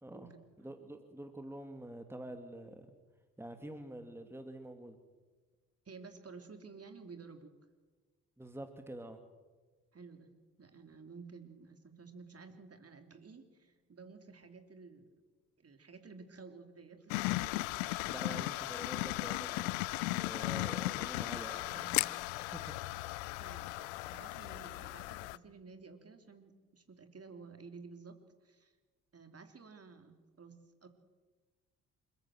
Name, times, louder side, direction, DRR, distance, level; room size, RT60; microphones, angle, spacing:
voice 1, 0.6-3.0 3.4-5.0 8.4-9.2 18.1-19.7 20.1-21.9 22.5-23.1, right 1 dB, 5° right, 7 dB, 2.4 m, -47 dB
voice 2, 5.8-7.5 9.9-10.3 10.6-15.1 15.6-17.6 23.0-28.7 29.1-30.6 30.8-30.9, right 4 dB, 35° right, 7 dB, 3.2 m, -53 dB
sound 1, 13.3-13.8 16.9-18.7 20.9-22.5 24.5-26.9, right 3 dB, 90° right, 5.0 m, -64 dB
sound 2, 17.1-25.4, left 21 dB, 70° left, 0.7 m, -36 dB
28.0 x 14.5 x 7.8 m, 1.3 s
figure-of-eight pair, 45°, 43 cm